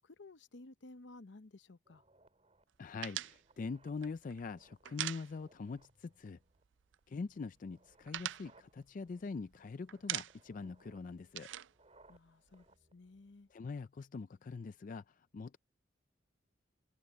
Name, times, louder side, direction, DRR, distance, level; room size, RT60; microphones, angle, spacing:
voice 1, 0.0-2.0 12.1-13.5, left 2 dB, 75° left, 0.8 m, -55 dB
sound 1, 1.8-13.8, right 2 dB, 35° right, 6.3 m, -69 dB
voice 2, 2.8-6.4 7.1-11.5 13.5-15.6, left 4 dB, 45° left, 0.4 m, -43 dB
sound 2, 3.0-5.8 6.1-6.2 6.5-7.2 7.6-9.6 9.9-10.6 10.9-12.7, right 13 dB, 85° right, 0.4 m, -43 dB
head